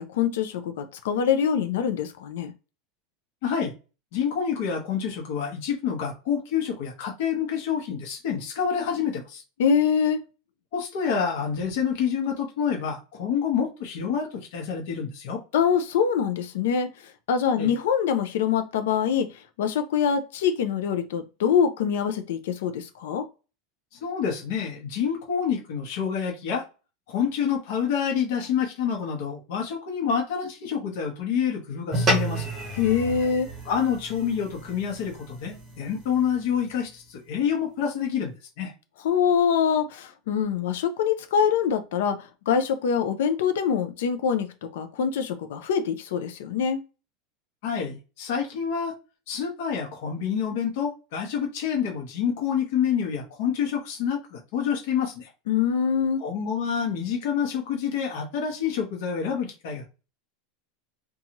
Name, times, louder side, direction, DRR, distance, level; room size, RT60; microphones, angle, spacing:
voice 1, 0.0-2.5 9.6-10.2 15.5-23.3 32.8-33.5 39.0-44.5 44.7-46.8 55.5-56.2, left 7 dB, 85° left, 0.4 m, -24 dB
voice 2, 3.4-3.7 4.1-9.4 10.7-15.4 17.6-17.7 23.9-26.7 27.1-32.5 33.6-38.7 47.6-48.9 49.3-55.3 56.2-59.9, left 7 dB, 60° left, 0.9 m, -28 dB
sound 1, 31.9-36.5, right 1 dB, 15° right, 1.0 m, -31 dB
2.7 x 2.3 x 2.9 m
supercardioid pair, 170°, 0 cm